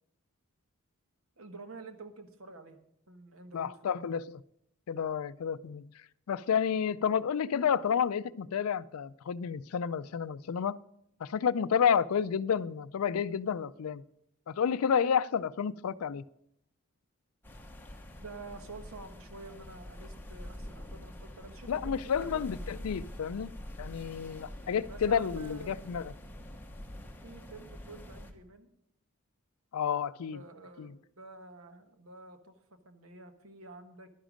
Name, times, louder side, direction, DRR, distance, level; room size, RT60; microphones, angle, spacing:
voice 1, 1.4-2.8 3.1-4.1 18.2-22.4 24.9-25.7 27.2-28.7 30.3-34.1, right 3 dB, 65° right, 7 dB, 1.2 m, -49 dB
voice 2, 3.5-4.4 4.9-5.9 6.3-10.8 11.2-14.0 14.5-16.2 21.7-26.1 29.7-30.4 30.8-30.9, left 7 dB, 80° left, 17 dB, 0.4 m, -30 dB
sound 1, 17.4-28.3, left 1 dB, 10° left, 1.0 m, -45 dB
11.5 x 10.0 x 5.1 m, 0.76 s
head